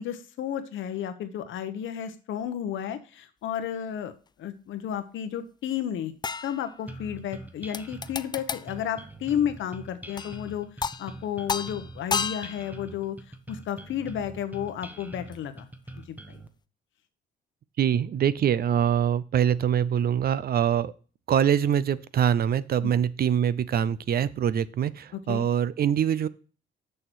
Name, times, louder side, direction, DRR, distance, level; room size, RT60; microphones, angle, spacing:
voice 1, 0.0-4.1 4.4-6.1 6.4-10.7 11.0-13.2 13.5-15.7 16.1-16.4 22.8-22.9 25.3-25.5, left 9 dB, 75° left, 10 dB, 1.0 m, -32 dB
sound 1, 6.2-7.1 7.7-8.7 10.2-10.5 10.8-11.2 11.5-12.8 15.3-15.4, left 5 dB, 20° left, 0.3 m, -32 dB
sound 2, 6.9-16.5, right 2 dB, 10° right, 1.0 m, -44 dB
voice 2, 17.8-20.9 21.3-26.3, right 9 dB, 50° right, 17 dB, 0.5 m, -24 dB
6.5 x 6.3 x 4.5 m, 0.38 s
cardioid pair, 90°, 20 cm